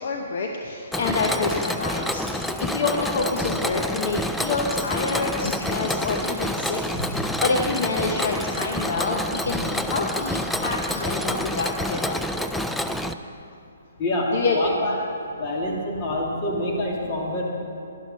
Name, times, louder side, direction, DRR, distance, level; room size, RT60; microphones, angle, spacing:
voice 1, 0.0-6.8 7.1-12.5 14.3-15.0, left 3 dB, 55° left, 2 dB, 0.9 m, -27 dB
Mechanisms, 0.9-13.1, left 1 dB, 5° left, 0.3 m, -28 dB
voice 2, 14.0-15.0 15.4-17.4, left 1 dB, 30° left, -2 dB, 2.5 m, -26 dB
11.0 x 10.5 x 5.4 m, 2.6 s
hypercardioid pair, 150°, 0 cm